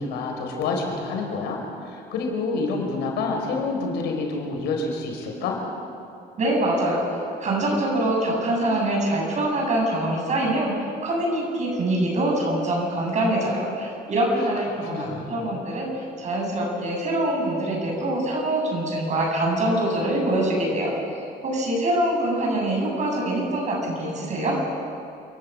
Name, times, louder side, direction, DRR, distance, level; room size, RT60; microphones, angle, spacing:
voice 1, 0.0-1.6 1.8-5.6 14.3-14.5 14.8-15.4, left 3 dB, 85° left, 2 dB, 4.9 m, -28 dB
voice 2, 6.4-20.9 21.4-24.6, right 1 dB, 45° right, 0 dB, 7.6 m, -24 dB
28.5 x 12.0 x 8.7 m, 2.5 s
cardioid pair, 110°, 17 cm